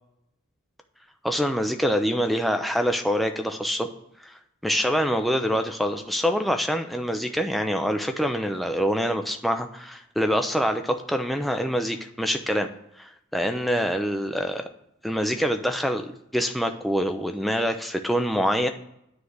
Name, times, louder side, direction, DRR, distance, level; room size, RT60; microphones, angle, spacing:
voice 1, 1.2-3.9 4.2-12.7 13.0-14.7 15.0-18.7, equal, ahead, 5 dB, 0.4 m, -25 dB
9.3 x 3.3 x 6.3 m, 0.79 s
head